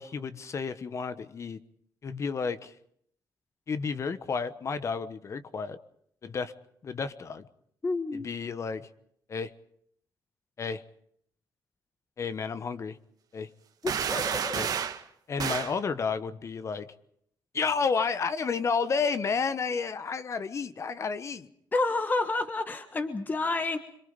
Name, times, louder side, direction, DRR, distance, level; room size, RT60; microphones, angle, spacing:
voice 1, 0.0-1.6 2.0-2.7 3.7-5.8 6.2-6.5 6.8-7.5 8.1-8.9 9.3-9.5 10.6-10.8 12.2-13.0 13.3-13.5 14.5-14.7 15.3-16.9 17.5-21.5, left 5 dB, 40° left, 13 dB, 1.2 m, -31 dB
voice 2, 7.8-8.3 13.8-14.7 21.7-23.8, left 3 dB, 25° left, 8 dB, 1.5 m, -29 dB
sound 1, 13.9-15.0 15.4-15.8, right 8 dB, 55° right, 1.6 m, -30 dB
26.0 x 23.0 x 5.3 m, 0.67 s
cardioid pair, 120°, 8 cm